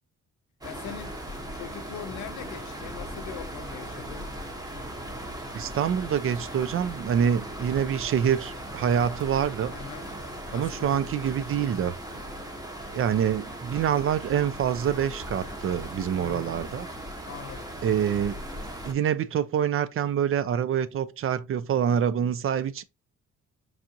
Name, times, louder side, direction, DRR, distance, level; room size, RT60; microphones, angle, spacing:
voice 1, 0.6-1.2 1.5-4.3 9.7-10.1 10.5-11.0 16.1-16.6 17.2-17.7, left 10 dB, 70° left, 0.5 m, -42 dB
sound 1, 0.6-18.9, right 1 dB, 15° right, 1.0 m, -38 dB
voice 2, 5.5-9.7 10.5-11.9 12.9-16.9 17.8-18.4 18.8-22.8, right 8 dB, 45° right, 0.4 m, -26 dB
4.7 x 2.4 x 2.7 m
cardioid pair, 90°, 30 cm